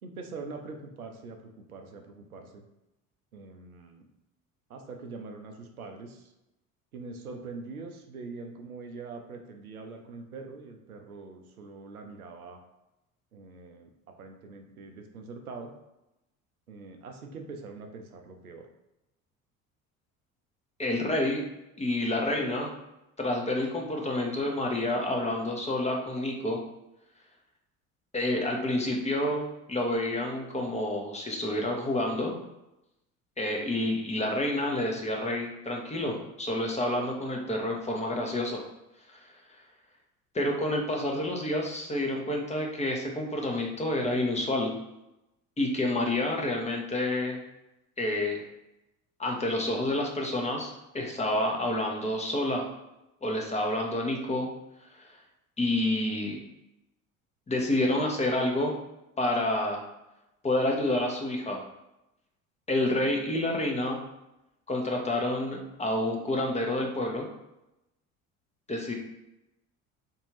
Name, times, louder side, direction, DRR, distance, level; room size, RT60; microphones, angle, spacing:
voice 1, 0.0-2.6 3.3-4.1 4.7-6.3 6.9-12.6 13.3-13.9 14.2-15.7 16.7-18.7, right 3 dB, 90° right, 4 dB, 0.5 m, -43 dB
voice 2, 20.8-21.4 21.8-22.7 23.2-26.6 28.1-32.4 33.4-38.6 39.1-39.3 40.3-44.7 45.6-47.4 48.0-48.4 49.2-52.7 53.2-54.5 54.9-55.1 55.6-56.4 57.5-58.7 59.2-59.8 60.4-61.6 62.7-64.0 64.7-67.3 68.7-68.9, left 1 dB, 15° left, 1 dB, 0.8 m, -29 dB
3.6 x 2.6 x 3.0 m, 0.91 s
figure-of-eight pair, 60°, 42 cm